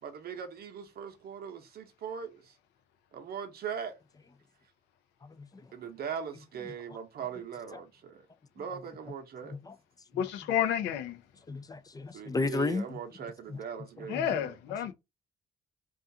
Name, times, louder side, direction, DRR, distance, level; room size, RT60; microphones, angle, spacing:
voice 1, 0.0-2.5 3.1-4.0 5.7-8.3 8.5-9.6 12.1-14.6, right 7 dB, 60° right, 0.7 m, -40 dB
voice 2, 10.2-11.2 14.1-14.9, left 9 dB, 90° left, 0.5 m, -30 dB
voice 3, 11.5-12.8 13.5-13.6 14.1-14.4, left 3 dB, 20° left, 0.3 m, -33 dB
2.4 x 2.3 x 2.6 m
supercardioid pair, 65°, 18 cm